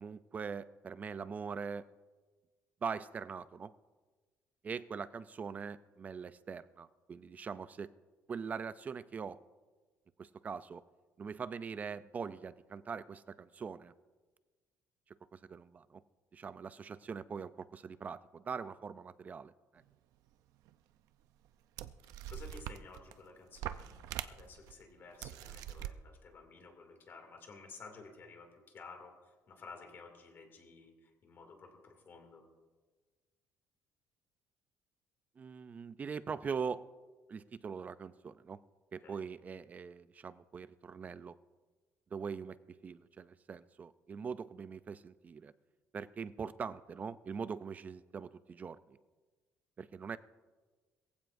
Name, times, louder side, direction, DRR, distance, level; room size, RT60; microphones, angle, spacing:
voice 1, 0.0-1.9 2.8-3.7 4.6-7.9 8.3-9.4 10.2-10.8 11.2-13.9 15.3-16.0 16.3-19.8 35.4-36.8 37.3-38.6 38.9-41.3 42.1-42.6 42.8-45.5 45.9-48.8 49.8-50.2, right 6 dB, 25° right, 15 dB, 0.4 m, -42 dB
sound 1, 20.7-20.8 21.4-21.5 21.8-23.2 23.5-24.7 25.2-25.9, right 12 dB, 90° right, 0.6 m, -43 dB
voice 2, 22.1-29.1 29.5-32.4 39.0-39.2, left 4 dB, 35° left, 3 dB, 2.4 m, -53 dB
22.0 x 15.5 x 2.6 m, 1.3 s
cardioid pair, 165°, 6 cm